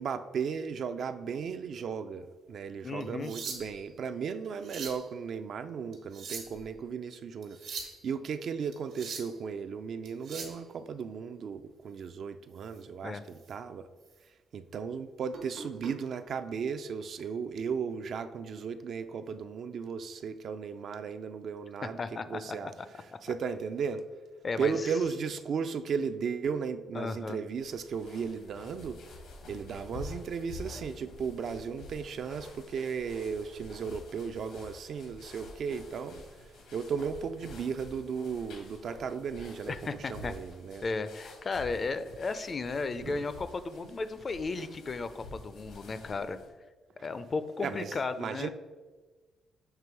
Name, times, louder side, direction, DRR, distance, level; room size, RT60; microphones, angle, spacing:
voice 1, 0.0-13.9 14.5-22.0 22.3-22.7 23.2-24.1 24.6-29.0 29.5-36.2 36.7-40.8 43.0-43.2 47.0-47.1 47.6-48.5, right 6 dB, 60° right, 9 dB, 0.4 m, -35 dB
voice 2, 2.8-3.3 13.0-13.2 22.0-22.6 24.4-24.7 26.9-27.4 39.7-40.3 40.8-46.4 47.0-48.5, left 4 dB, 35° left, 12 dB, 0.4 m, -34 dB
sound 1, 3.0-3.9 4.4-5.0 5.9-6.7 7.4-8.0 8.7-9.4 10.1-10.6 12.6-12.8 13.3-13.5 14.0-14.1 15.3-15.9 17.0-17.2, right 5 dB, 80° right, 1.2 m, -42 dB
sound 2, 27.5-46.5, left 2 dB, 85° left, 1.4 m, -49 dB
6.8 x 3.0 x 4.5 m, 1.3 s
cardioid pair, 90°, 0 cm